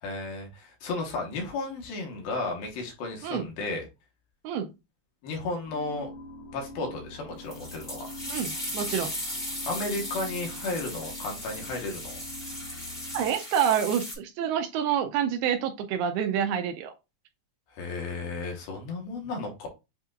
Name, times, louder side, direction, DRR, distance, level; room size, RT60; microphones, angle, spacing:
voice 1, 0.0-3.8 5.2-6.1 6.5-8.1 9.7-12.2 17.7-19.7, left 3 dB, 70° left, 1 dB, 2.6 m, -34 dB
sound 1, 5.7-13.3, left 1 dB, 85° left, 3.7 m, -44 dB
sound 2, 7.5-14.2, left 1 dB, 30° left, 0.8 m, -37 dB
voice 2, 8.3-9.1 13.1-16.9, right 8 dB, 80° right, 6 dB, 2.4 m, -27 dB
7.7 x 2.9 x 2.4 m, 0.25 s
omnidirectional pair, 4.7 m